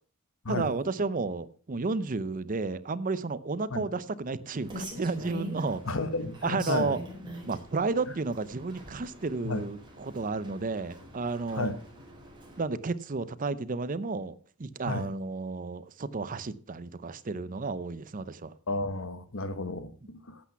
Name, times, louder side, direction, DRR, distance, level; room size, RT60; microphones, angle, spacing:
voice 1, 0.5-5.9 6.4-7.0 7.5-11.8 12.6-18.5, right 3 dB, 35° right, 0.6 m, -32 dB
Rain, 4.5-12.6, equal, 20° right, 4.4 m, -44 dB
voice 2, 5.8-6.9 9.4-9.6 11.5-11.8 14.9-15.1 18.7-20.4, left 2 dB, 60° left, 1.2 m, -32 dB
12.0 x 8.4 x 5.7 m
head